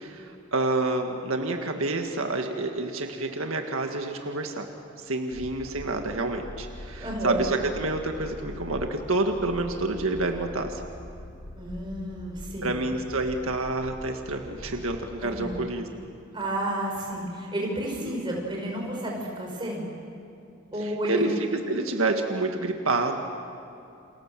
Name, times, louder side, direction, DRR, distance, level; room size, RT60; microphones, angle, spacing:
voice 1, 0.0-4.7 5.0-10.8 12.6-16.0 18.0-18.1 20.8-23.2, right 2 dB, 85° right, 4 dB, 1.8 m, -28 dB
sound 1, 5.3-15.7, left 1 dB, 55° left, 1.4 m, -43 dB
voice 2, 7.0-7.5 11.6-12.8 15.2-15.6 16.3-19.9 20.7-21.3, right 1 dB, 20° right, -1 dB, 5.9 m, -31 dB
29.5 x 27.0 x 7.6 m, 2.7 s
head